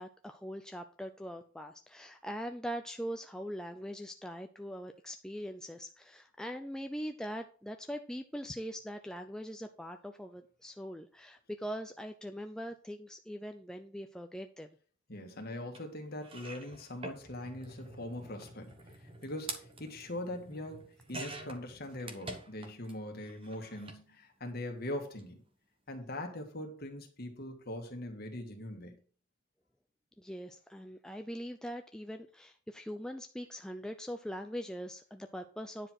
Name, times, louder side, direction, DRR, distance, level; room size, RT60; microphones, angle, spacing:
voice 1, 0.0-14.7 30.2-35.9, equal, 5° left, 5 dB, 0.4 m, -42 dB
voice 2, 15.1-25.4 25.9-28.9, left 1 dB, 45° left, 3 dB, 1.8 m, -42 dB
sound 1, 15.7-15.8 16.2-22.9 23.2-24.0 25.0-25.2 25.5-25.6, right 2 dB, 25° right, 1.2 m, -47 dB
10.0 x 4.7 x 5.9 m, 0.42 s
head